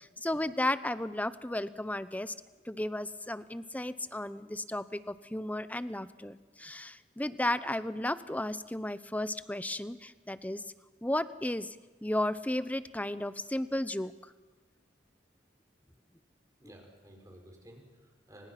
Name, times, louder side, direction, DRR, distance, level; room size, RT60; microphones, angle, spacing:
voice 1, 0.0-2.3 2.6-10.6 11.0-11.8 12.0-14.1, left 1 dB, 10° left, 14 dB, 0.8 m, -34 dB
voice 2, 16.6-18.5, right 1 dB, 20° right, 2 dB, 5.8 m, -54 dB
29.5 x 26.5 x 6.0 m, 1.2 s
head